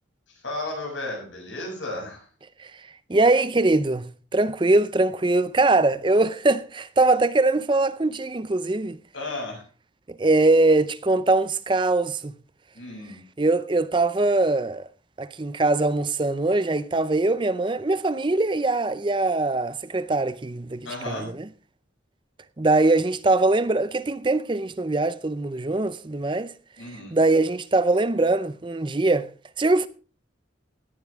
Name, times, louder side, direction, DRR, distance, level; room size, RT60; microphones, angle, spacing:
voice 1, 0.3-2.2 9.1-9.6 12.7-13.2 20.8-21.3 26.8-27.2, left 2 dB, 90° left, 7.3 m, -34 dB
voice 2, 3.1-9.0 10.2-12.3 13.4-14.9 15.2-21.5 22.6-26.5 27.1-29.3 29.6-29.9, right 2 dB, 25° right, 0.5 m, -22 dB
17.0 x 10.5 x 3.6 m
head